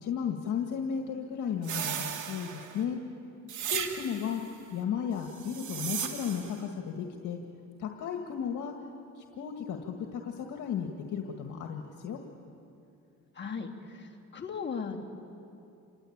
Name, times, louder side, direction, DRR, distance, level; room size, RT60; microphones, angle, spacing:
voice 1, 0.0-3.0 3.7-4.4 4.7-7.4 7.8-8.7 9.2-12.2, left 7 dB, 75° left, 3 dB, 1.9 m, -34 dB
sound 1, 1.6-2.8 3.5-4.4 5.3-6.6, right 8 dB, 75° right, 2.5 m, -36 dB
voice 2, 13.3-15.0, left 5 dB, 35° left, 1 dB, 3.0 m, -37 dB
28.0 x 21.5 x 8.8 m, 2.7 s
cardioid pair, 90°, 30 cm